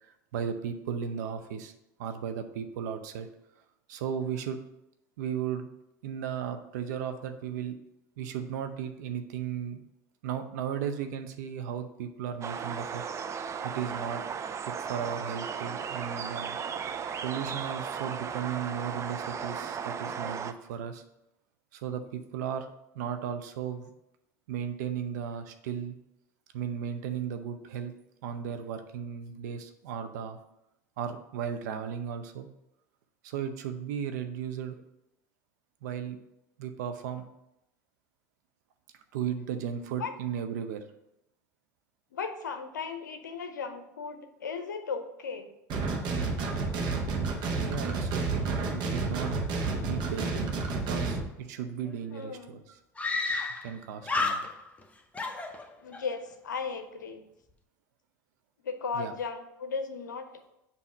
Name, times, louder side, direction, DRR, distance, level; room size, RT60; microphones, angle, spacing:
voice 1, 0.0-1.7 2.0-3.3 3.9-4.6 5.2-5.7 6.0-7.8 8.2-9.8 10.2-13.0 13.6-14.2 14.8-16.6 17.2-21.0 21.7-23.9 24.5-26.0 26.5-27.9 28.2-30.4 31.0-32.5 33.2-34.8 35.8-36.2 36.6-37.2 39.1-40.8 47.6-49.3 49.9-52.8 53.6-54.4 58.9-59.1, right 8 dB, 70° right, 7 dB, 0.6 m, -35 dB
sound 1, 12.4-20.5, right 7 dB, 30° right, 0.5 m, -36 dB
voice 2, 42.1-45.5 52.1-52.6 55.8-57.2 58.6-60.3, left 5 dB, 85° left, 7 dB, 0.6 m, -36 dB
sound 2, 45.7-51.2, right 3 dB, 50° right, 1.1 m, -30 dB
Screaming, 51.9-52.0 52.2-52.3 53.0-53.8 54.0-54.8 55.1-56.1, left 3 dB, 15° left, 0.7 m, -31 dB
7.2 x 2.8 x 5.4 m, 0.86 s
hypercardioid pair, 80°, 10 cm